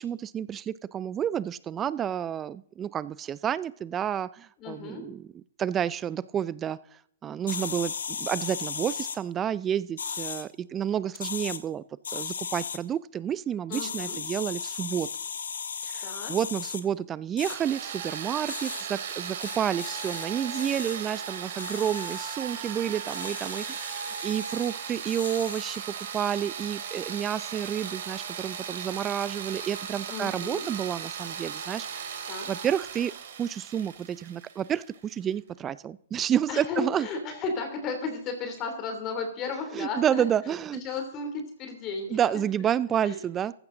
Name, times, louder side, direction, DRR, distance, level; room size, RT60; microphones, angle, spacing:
voice 1, 0.0-7.9 8.2-11.8 12.1-15.1 15.8-25.8 26.1-32.1 32.5-33.1 33.4-37.1 39.7-40.8 42.1-43.5, right 9 dB, 20° right, 19 dB, 0.4 m, -30 dB
voice 2, 4.6-5.1 13.7-14.2 16.0-16.4 30.1-30.7 32.3-32.5 36.5-42.4 43.0-43.2, left 4 dB, 30° left, 5 dB, 3.1 m, -34 dB
sound 1, 7.5-9.2 10.0-10.4 11.1-11.6 12.0-12.8 13.7-16.8 17.4-17.6 18.5-18.8 19.4-20.3 20.5-21.0 21.6-22.4 23.1-24.7 25.1-25.8, left 6 dB, 80° left, 1.4 m, -36 dB
sound 2, 17.4-35.1, right 7 dB, 60° right, 3.1 m, -37 dB
15.0 x 11.5 x 3.9 m, 0.66 s
hypercardioid pair, 130°, 0 cm